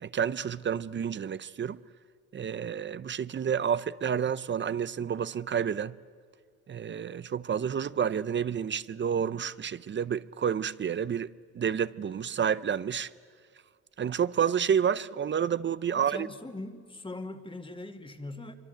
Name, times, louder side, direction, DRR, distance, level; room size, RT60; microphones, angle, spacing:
voice 1, 0.0-1.8 2.3-6.0 6.7-11.3 11.5-13.1 14.0-16.3, right 8 dB, 40° right, 0.6 m, -29 dB
voice 2, 15.9-18.5, left 2 dB, 15° left, 2.1 m, -41 dB
25.5 x 24.0 x 7.9 m
cardioid pair, 90°, 30 cm